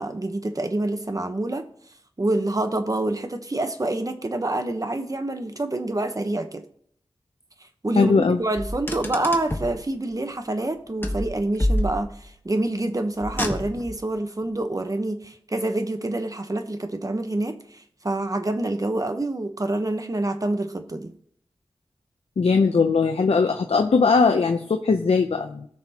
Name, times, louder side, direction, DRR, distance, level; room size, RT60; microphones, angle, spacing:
voice 1, 0.0-1.7 2.2-6.6 7.8-21.1, right 2 dB, 35° right, 7 dB, 1.1 m, -27 dB
voice 2, 8.0-8.4 22.4-25.7, left 4 dB, 85° left, 5 dB, 0.6 m, -20 dB
Car, 8.6-9.8 11.0-12.3 13.2-14.0, left 1 dB, 20° left, 1.3 m, -27 dB
17.5 x 6.0 x 3.0 m, 0.63 s
wide cardioid pair, 65°, 10 cm